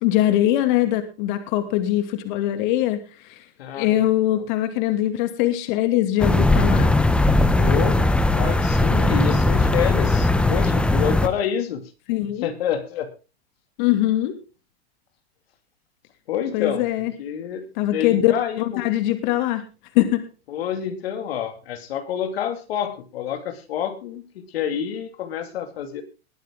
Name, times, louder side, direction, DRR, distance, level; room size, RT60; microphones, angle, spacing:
voice 1, 0.0-3.4 3.7-6.9 12.1-12.5 13.8-14.3 16.5-17.1 17.8-19.6 19.9-20.2, left 13 dB, 50° left, 8 dB, 2.5 m, -22 dB
voice 2, 3.6-4.0 7.5-11.8 12.4-13.1 16.3-18.8 20.5-26.0, left 9 dB, 70° left, 7 dB, 2.5 m, -28 dB
sound 1, 6.2-11.3, left 2 dB, 5° left, 0.8 m, -19 dB
21.0 x 9.3 x 3.7 m, 0.33 s
hypercardioid pair, 135°, 31 cm